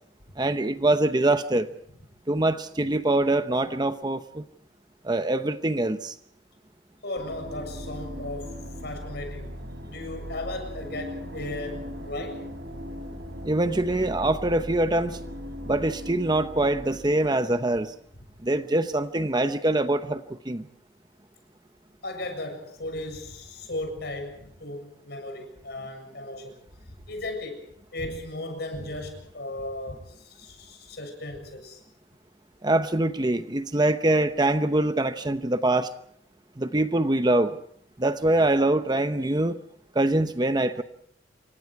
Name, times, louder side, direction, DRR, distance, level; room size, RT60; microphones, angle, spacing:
voice 1, 0.4-1.7 2.3-4.4 5.0-6.1 13.4-15.2 15.7-17.9 18.4-20.7 32.6-35.9 36.6-37.6 38.0-39.6 39.9-40.8, right 2 dB, 25° right, 10 dB, 0.8 m, -24 dB
voice 2, 7.0-9.6 9.9-12.5 22.0-26.6 26.9-31.8, left 1 dB, 60° left, 6 dB, 7.4 m, -36 dB
sound 1, 7.2-17.9, equal, 85° right, 4.6 m, -39 dB
28.5 x 24.5 x 4.8 m, 0.64 s
head